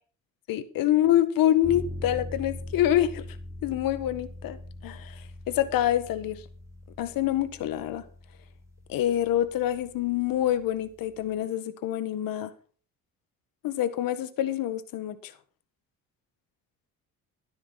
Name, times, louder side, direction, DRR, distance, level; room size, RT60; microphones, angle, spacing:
voice 1, 0.5-3.2 3.6-4.6 4.8-6.4 7.0-8.0 8.9-12.5 13.6-15.3, left 12 dB, 75° left, 12 dB, 1.8 m, -26 dB
sound 1, 1.6-11.4, left 1 dB, 10° right, 6.9 m, -42 dB
14.0 x 12.0 x 4.3 m, 0.40 s
supercardioid pair, 80°, 35 cm